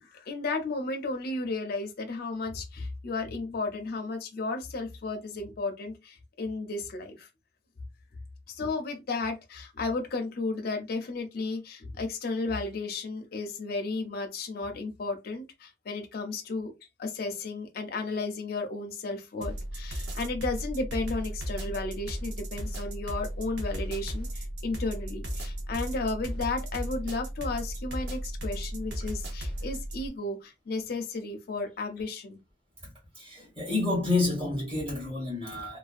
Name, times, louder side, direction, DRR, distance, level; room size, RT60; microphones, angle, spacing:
voice 1, 0.0-7.3 8.5-16.7 17.0-32.4, left 3 dB, 55° left, 0.5 m, -33 dB
sound 1, 19.4-30.1, equal, 60° right, 0.7 m, -35 dB
voice 2, 33.1-35.8, left 3 dB, 30° right, 1.3 m, -29 dB
2.4 x 2.2 x 2.4 m
head